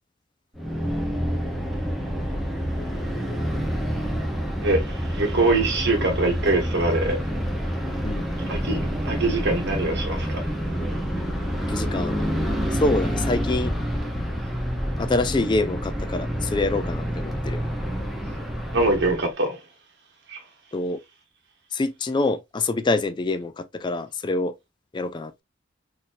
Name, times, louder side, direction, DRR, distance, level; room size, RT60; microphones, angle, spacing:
sound 1, 0.6-19.3, equal, ahead, 0.7 m, -28 dB
voice 1, 4.6-7.2 8.5-10.4 18.7-19.6 20.3-20.4, right 2 dB, 65° right, 1.2 m, -23 dB
voice 2, 11.7-12.2 12.7-13.7 15.0-17.6 20.7-21.0 21.7-24.5 24.9-25.4, left 2 dB, 25° left, 0.4 m, -26 dB
4.0 x 2.7 x 2.5 m
head